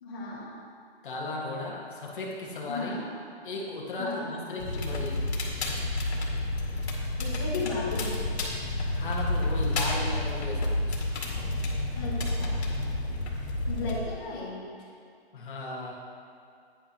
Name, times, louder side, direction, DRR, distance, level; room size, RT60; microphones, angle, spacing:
voice 1, 0.0-0.5 2.7-3.0 4.0-4.3 7.2-8.2 11.9-12.6 13.7-14.6, left 3 dB, 20° left, -8 dB, 0.9 m, -35 dB
voice 2, 1.0-3.0 3.4-5.2 9.0-11.0 15.3-15.9, left 2 dB, 50° left, -3 dB, 1.8 m, -36 dB
Crackle, 4.6-14.0, left 2 dB, 75° left, 2.1 m, -30 dB
10.0 x 8.8 x 3.0 m, 2.3 s
hypercardioid pair, 180°, 32 cm